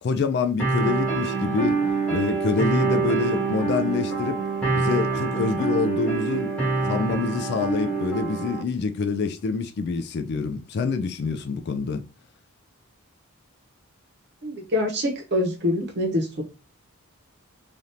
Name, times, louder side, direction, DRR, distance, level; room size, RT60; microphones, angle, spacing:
voice 1, 0.0-1.8 2.1-6.5 6.9-12.0, left 5 dB, 50° left, 0.3 m, -26 dB
sound 1, 0.6-8.6, right 4 dB, 5° left, 1.0 m, -25 dB
voice 2, 14.4-16.4, left 1 dB, 50° right, 0.8 m, -25 dB
3.3 x 2.5 x 2.7 m
head